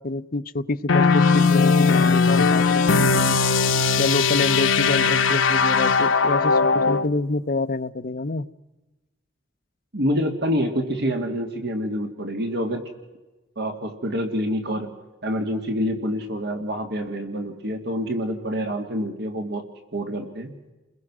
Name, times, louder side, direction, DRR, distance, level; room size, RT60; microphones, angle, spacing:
voice 1, 0.0-3.4 4.0-8.5, left 2 dB, 50° left, 12 dB, 0.7 m, -27 dB
sound 1, 0.9-7.1, left 4 dB, 80° left, 1.0 m, -19 dB
voice 2, 9.9-12.8 13.6-14.9 15.2-19.6 19.9-20.5, equal, 60° right, 5 dB, 2.2 m, -27 dB
30.0 x 21.5 x 6.1 m, 1.1 s
head